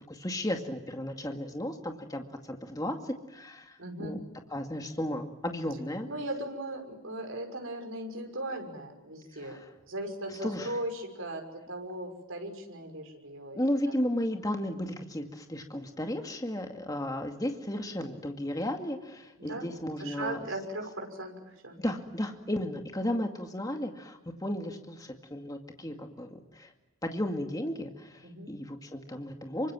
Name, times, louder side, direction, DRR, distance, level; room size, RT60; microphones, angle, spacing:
voice 1, 0.1-4.2 4.5-6.1 9.3-9.7 10.4-10.8 13.5-20.4 21.8-26.7 27.0-29.7, left 1 dB, 15° left, 4 dB, 2.2 m, -34 dB
voice 2, 3.8-4.2 6.1-9.6 9.9-13.6 19.4-19.7 20.0-21.3 21.6-21.8 28.2-28.5, right 1 dB, 75° right, 3 dB, 6.0 m, -38 dB
27.0 x 25.0 x 7.6 m, 1.0 s
head